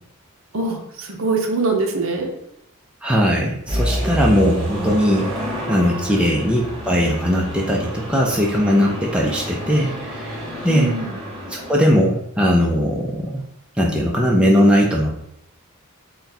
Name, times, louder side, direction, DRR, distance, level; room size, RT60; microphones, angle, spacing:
voice 1, 0.5-2.3 6.1-6.3 10.7-11.2, right 3 dB, 60° right, 3 dB, 0.7 m, -23 dB
voice 2, 3.0-10.4 10.6-10.9 11.5-13.4 13.8-15.2, equal, 5° right, -2 dB, 0.4 m, -19 dB
sound 1, 3.7-11.7, equal, 25° right, 0.8 m, -28 dB
3.8 x 2.3 x 4.0 m, 0.74 s
head